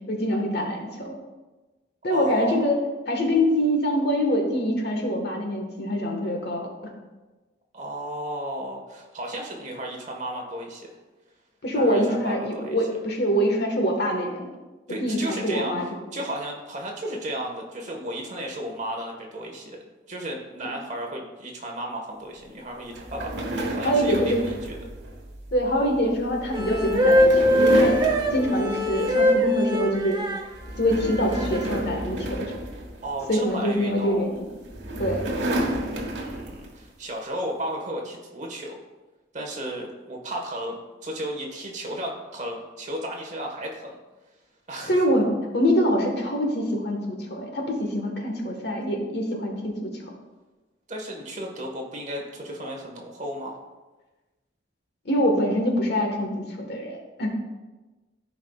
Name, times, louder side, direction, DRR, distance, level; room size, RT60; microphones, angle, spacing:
voice 1, 0.1-1.1 2.0-2.8 3.1-6.7 11.6-14.5 15.0-15.9 23.8-24.4 25.5-27.9 28.3-30.2 30.8-32.5 33.3-34.5 35.0-35.3 44.9-49.9 55.0-57.3, equal, 55° left, 2 dB, 1.4 m, -24 dB
voice 2, 2.1-2.7 7.7-10.9 11.7-12.8 14.9-19.8 20.1-24.6 33.0-34.3 35.7-38.8 39.3-44.0 44.7-45.0 50.9-53.6, right 1 dB, 40° right, 1 dB, 1.4 m, -34 dB
sound 1, 22.9-29.5 29.8-30.1 30.5-33.5 34.3-36.8, right 1 dB, 65° right, 1.4 m, -31 dB
sound 2, 26.5-30.4 31.2-31.8, equal, 25° right, 0.7 m, -21 dB
15.0 x 5.0 x 2.4 m, 1.2 s
head